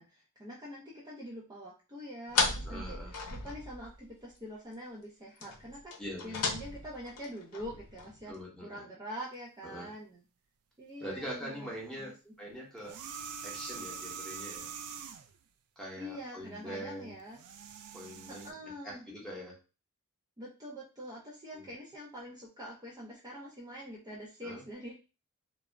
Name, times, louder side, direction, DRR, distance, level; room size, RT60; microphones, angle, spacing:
voice 1, 0.0-3.0 3.3-5.9 6.2-8.3 8.6-10.2 10.8-12.3 16.0-17.4 18.3-19.1 20.4-24.9, equal, 20° right, -5 dB, 0.5 m, -45 dB
sound 1, 2.3-4.1 4.4-4.5 4.7-4.8 5.4-8.4, left 4 dB, 85° left, 0.6 m, -35 dB
voice 2, 2.6-3.1 6.0-6.4 8.3-8.8 9.6-9.9 11.0-13.0 13.4-14.7 15.8-17.2 17.9-19.6 21.5-21.7 24.4-24.6, equal, 5° left, -4 dB, 0.9 m, -43 dB
sound 2, 12.8-15.4 17.2-18.5, right 6 dB, 75° right, 0.3 m, -43 dB
2.4 x 2.0 x 3.3 m, 0.31 s
head